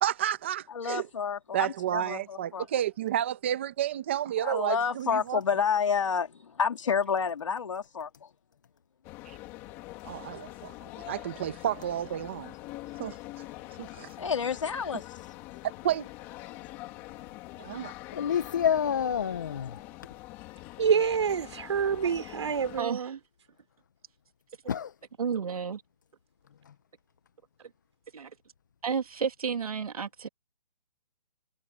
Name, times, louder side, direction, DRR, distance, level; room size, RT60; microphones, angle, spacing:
voice 1, 0.0-1.1 1.5-5.4 10.0-12.5 13.0-13.1 13.8-14.1 15.8-16.1 17.6-17.9, right 11 dB, 20° right, 1.2 m, -31 dB
voice 2, 0.7-2.7 4.4-8.1 14.2-15.0, left 6 dB, 50° left, 2.8 m, -29 dB
sound 1, 9.0-22.8, left 18 dB, 10° left, 2.6 m, -44 dB
voice 3, 18.1-19.8 24.7-24.9 26.7-26.8, left 8 dB, 30° left, 0.9 m, -28 dB
voice 4, 20.8-23.2, right 7 dB, 45° right, 5.4 m, -27 dB
voice 5, 22.8-23.1 25.2-25.8 28.1-28.3 28.8-30.3, right 6 dB, 65° right, 2.5 m, -31 dB
hypercardioid pair, 180°, 20 cm